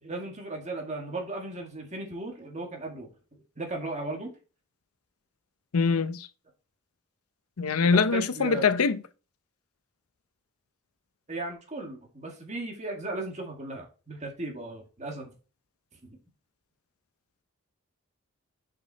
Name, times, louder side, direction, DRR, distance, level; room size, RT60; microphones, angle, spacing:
voice 1, 0.0-3.1 3.6-4.3 7.8-8.6 11.3-15.3 16.0-16.2, right 2 dB, 35° right, 1.8 m, -36 dB
voice 2, 5.7-6.3 7.6-9.0, left 5 dB, 90° left, 0.6 m, -23 dB
6.2 x 6.0 x 4.1 m
head